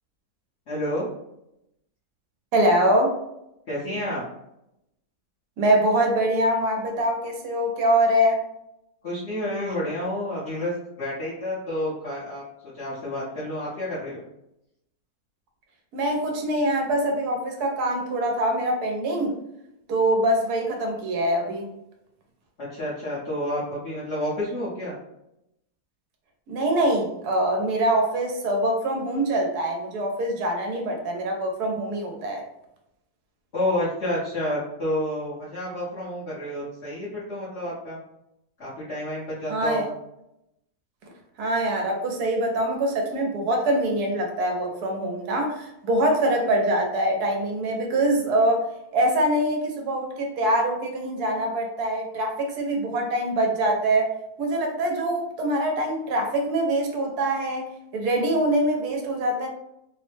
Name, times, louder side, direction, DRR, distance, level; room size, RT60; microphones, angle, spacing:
voice 1, 0.7-1.1 3.7-4.2 9.0-12.4 12.7-14.2 22.6-25.0 33.5-38.0 38.6-39.9, left 1 dB, 55° left, -8 dB, 1.0 m, -29 dB
voice 2, 2.5-3.2 5.6-8.4 15.9-19.4 19.9-21.7 26.5-32.4 39.5-39.9 41.4-48.6 48.9-54.1 54.4-59.5, right 1 dB, 90° right, 2 dB, 1.2 m, -24 dB
3.2 x 2.0 x 3.1 m, 0.84 s
omnidirectional pair, 1.6 m